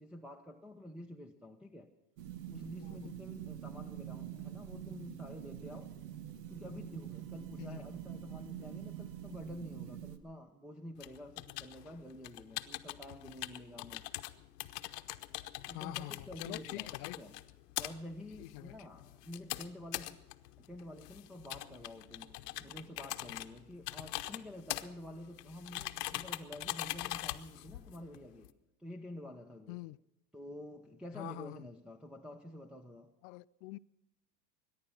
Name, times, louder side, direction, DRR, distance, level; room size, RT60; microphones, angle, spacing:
voice 1, 0.0-1.9 2.5-5.9 6.5-14.0 15.7-17.4 17.8-20.2 20.6-22.3 22.6-28.5 28.8-29.8 30.3-33.1, left 1 dB, ahead, 0.8 m, -49 dB
sound 1, 2.2-10.2, right 10 dB, 80° right, 1.4 m, -45 dB
sound 2, 11.0-28.5, left 17 dB, 75° left, 0.9 m, -43 dB
voice 2, 15.7-17.2 18.4-18.7 29.7-30.0 31.2-31.6 33.2-33.8, left 22 dB, 60° left, 0.5 m, -45 dB
Human voice, 21.4-23.6 24.5-26.4, right 1 dB, 35° right, 7.7 m, -69 dB
22.0 x 10.5 x 5.7 m
supercardioid pair, 110°, 48 cm